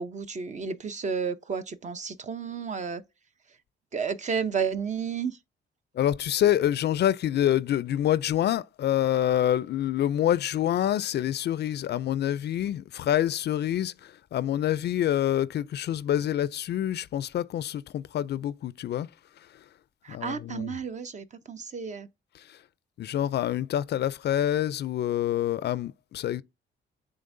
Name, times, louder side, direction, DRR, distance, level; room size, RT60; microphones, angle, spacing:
voice 1, 0.0-3.0 3.9-5.4 20.0-22.1, right 6 dB, 35° right, 0.7 m, -32 dB
voice 2, 6.0-19.1 20.1-20.8 22.5-22.6 23.0-26.4, left 11 dB, 60° left, 0.4 m, -26 dB
10.5 x 3.6 x 2.6 m
cardioid pair, 90°, 20 cm